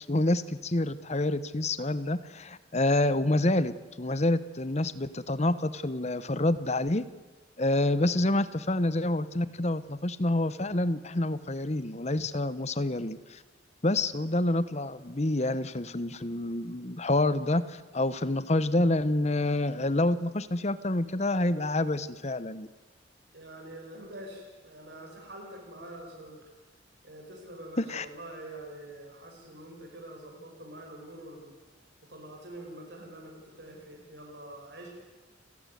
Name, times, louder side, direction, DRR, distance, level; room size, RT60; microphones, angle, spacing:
voice 1, 0.0-3.7 4.0-7.1 7.6-13.4 13.8-22.7 27.8-28.0, left 1 dB, 35° left, 14 dB, 1.0 m, -27 dB
voice 2, 23.3-26.4 27.0-31.5 32.1-34.9, right 1 dB, 60° right, 0 dB, 5.7 m, -45 dB
29.5 x 15.0 x 9.5 m, 1.2 s
head